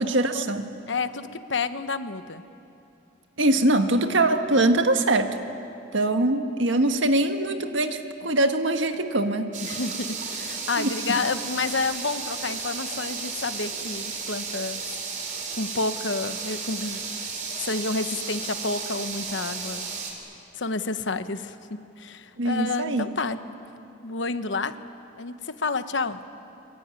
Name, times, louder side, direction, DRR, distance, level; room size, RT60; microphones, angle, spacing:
voice 1, 0.0-0.7 3.4-5.4 5.9-9.6 10.8-11.2 22.4-23.1, right 2 dB, 80° right, 6 dB, 1.6 m, -23 dB
voice 2, 0.9-2.4 9.6-14.8 15.6-17.0 17.6-19.9 20.5-23.4 24.0-24.8 25.2-26.2, left 3 dB, 75° left, 10 dB, 1.1 m, -30 dB
sound 1, 9.5-20.1, right 5 dB, 40° right, 3.9 m, -33 dB
24.0 x 23.0 x 9.8 m, 2.7 s
head